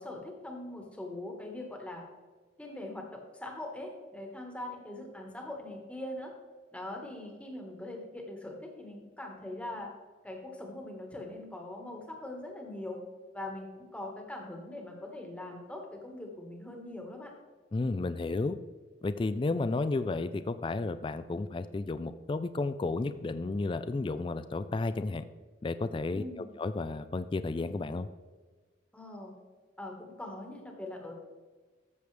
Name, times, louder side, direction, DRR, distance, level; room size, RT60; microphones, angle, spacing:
voice 1, 0.0-2.0 2.6-6.3 6.7-9.9 10.2-13.0 13.3-17.3 26.1-26.5 28.9-29.3 29.8-31.2, left 1 dB, 5° left, 1 dB, 1.4 m, -42 dB
voice 2, 17.7-18.6 19.0-25.2 25.6-26.2 26.6-28.1, left 3 dB, 25° left, 12 dB, 0.3 m, -32 dB
14.0 x 6.9 x 3.3 m, 1.3 s
head